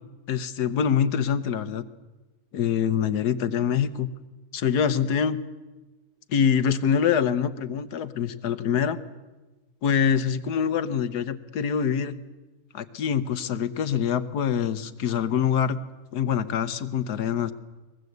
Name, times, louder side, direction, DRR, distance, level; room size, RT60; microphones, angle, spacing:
voice 1, 0.3-1.8 2.5-4.1 4.5-5.4 6.3-9.0 9.8-12.2 12.7-15.8 16.1-17.5, left 7 dB, 75° left, 13 dB, 1.5 m, -25 dB
22.5 x 20.5 x 8.1 m, 1.2 s
omnidirectional pair, 1.8 m